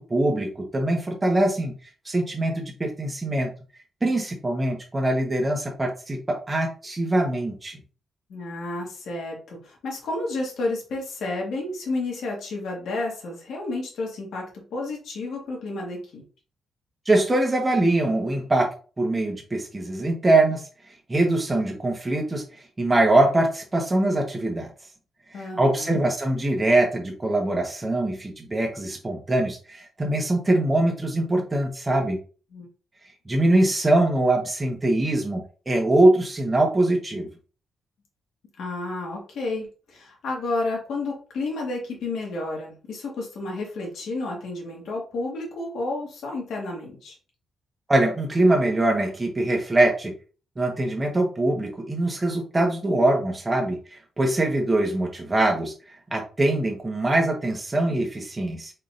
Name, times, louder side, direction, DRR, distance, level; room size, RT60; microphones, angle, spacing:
voice 1, 0.0-1.7 2.1-3.5 4.0-7.8 17.1-18.7 19.0-20.6 21.1-22.4 22.8-24.7 25.6-32.2 33.3-37.3 47.9-50.1 50.6-55.7 56.1-58.7, right 1 dB, 20° right, 1 dB, 1.1 m, -23 dB
voice 2, 8.3-16.2 25.3-26.1 32.5-32.7 38.6-47.2, left 2 dB, 80° left, -1 dB, 1.8 m, -31 dB
4.4 x 3.7 x 2.6 m, 0.37 s
cardioid pair, 125°, 0 cm